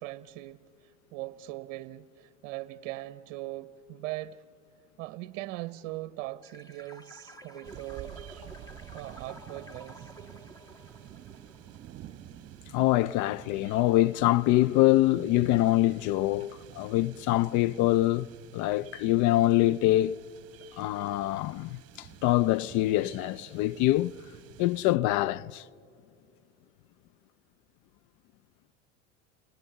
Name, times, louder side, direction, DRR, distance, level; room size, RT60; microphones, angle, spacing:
voice 1, 0.0-4.4 5.0-8.2 8.9-10.1, right 17 dB, 60° right, 0.8 m, -40 dB
sound 1, 6.4-12.2, right 1 dB, 10° left, 2.0 m, -50 dB
sound 2, 7.6-25.0, right 12 dB, 40° right, 1.2 m, -50 dB
voice 2, 12.7-18.3 18.5-20.2 20.8-24.1 24.6-25.6, left 16 dB, 55° left, 0.5 m, -25 dB
29.0 x 26.0 x 6.8 m
hypercardioid pair, 85°, 37 cm